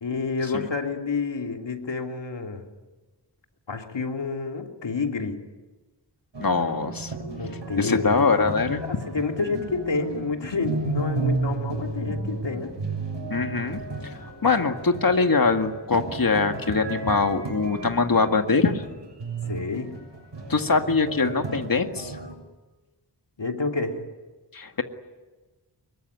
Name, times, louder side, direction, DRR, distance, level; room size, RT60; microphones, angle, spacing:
voice 1, 0.0-2.7 3.7-5.4 7.4-8.5 8.8-12.8 19.5-20.0 23.4-24.0, left 4 dB, 80° left, 3 dB, 2.9 m, -29 dB
sound 1, 6.3-22.4, right 3 dB, 80° right, 6.9 m, -33 dB
voice 2, 6.4-7.1 7.8-8.8 13.3-18.8 20.5-22.2 24.5-24.8, left 4 dB, 50° left, 6 dB, 2.1 m, -23 dB
25.0 x 22.0 x 9.5 m, 1.2 s
wide cardioid pair, 70°, 43 cm